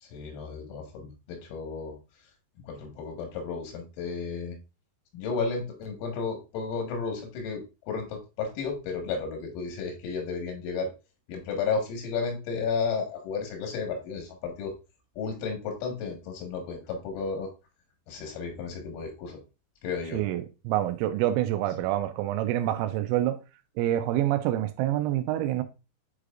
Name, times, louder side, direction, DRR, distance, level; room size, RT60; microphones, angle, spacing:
voice 1, 0.0-2.0 2.6-4.6 5.1-10.9 11.3-14.7 15.2-17.5 18.1-19.4 19.8-20.2, left 5 dB, 90° left, 4.3 m, -33 dB
voice 2, 20.1-23.4 23.8-25.6, right 13 dB, 90° right, 3.2 m, -27 dB
9.1 x 4.9 x 2.4 m
omnidirectional pair, 5.8 m